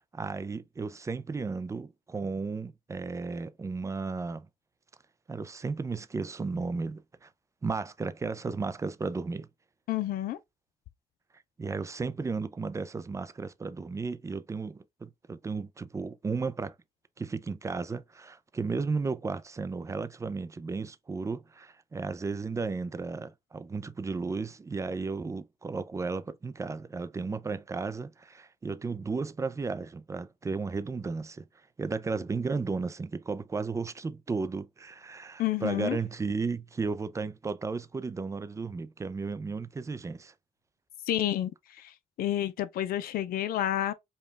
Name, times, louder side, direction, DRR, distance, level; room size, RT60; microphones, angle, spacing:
voice 1, 0.1-4.5 5.3-7.3 7.6-9.5 11.6-16.7 17.2-31.5 31.8-40.3, right 4 dB, 20° right, 0.4 m, -34 dB
voice 2, 9.9-10.4 35.4-36.0 41.1-41.9 42.2-43.9, left 12 dB, 80° left, 0.4 m, -30 dB
5.1 x 2.3 x 3.2 m
cardioid pair, 115°, 15 cm